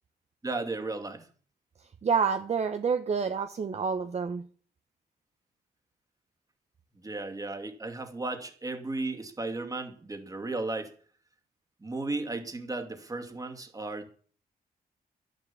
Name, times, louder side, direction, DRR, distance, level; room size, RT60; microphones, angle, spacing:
voice 1, 0.4-1.3 7.0-10.9 11.8-14.1, right 2 dB, 20° right, 6 dB, 2.4 m, -35 dB
voice 2, 2.0-4.4, right 5 dB, 45° right, 8 dB, 1.0 m, -28 dB
12.0 x 10.5 x 7.0 m, 0.43 s
cardioid pair, 115°, 16 cm